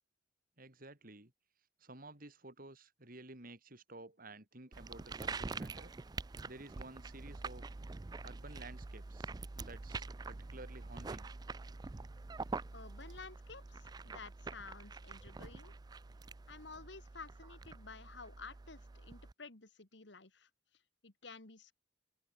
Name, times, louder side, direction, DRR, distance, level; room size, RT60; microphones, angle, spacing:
voice 1, 0.6-1.3 1.8-5.9 6.5-7.6 8.2-11.3, right 2 dB, 50° right, 4.1 m, -53 dB
sound 1, 4.7-19.3, right 3 dB, 20° right, 0.4 m, -46 dB
voice 2, 12.7-15.7 16.5-21.7, left 4 dB, 65° left, 2.2 m, -52 dB
open air
head